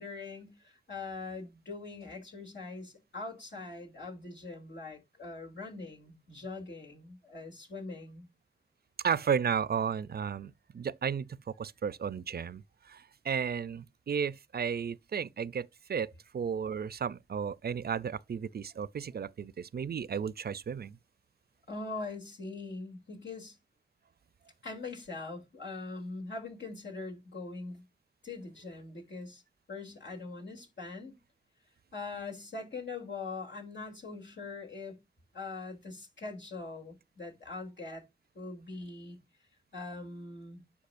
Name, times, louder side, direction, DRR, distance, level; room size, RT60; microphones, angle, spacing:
voice 1, 0.0-8.3 21.7-23.6 24.6-27.8 28.2-29.4 29.7-31.1 31.9-35.0 35.3-38.0 38.3-39.2 39.7-40.6, left 3 dB, 85° left, 2.9 m, -42 dB
voice 2, 9.0-21.0, right 7 dB, 60° right, 0.4 m, -34 dB
10.5 x 4.8 x 2.5 m
cardioid pair, 45°, 18 cm